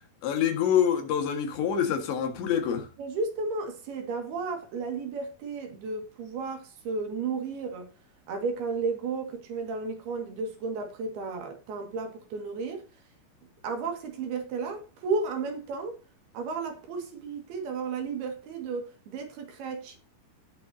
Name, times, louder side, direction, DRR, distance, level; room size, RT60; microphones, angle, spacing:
voice 1, 0.2-2.9, left 8 dB, 75° left, 4.0 m, -26 dB
voice 2, 3.0-7.9 8.3-12.8 13.6-16.0 16.3-20.0, right 4 dB, 65° right, 3.8 m, -33 dB
18.5 x 7.7 x 2.8 m
omnidirectional pair, 5.2 m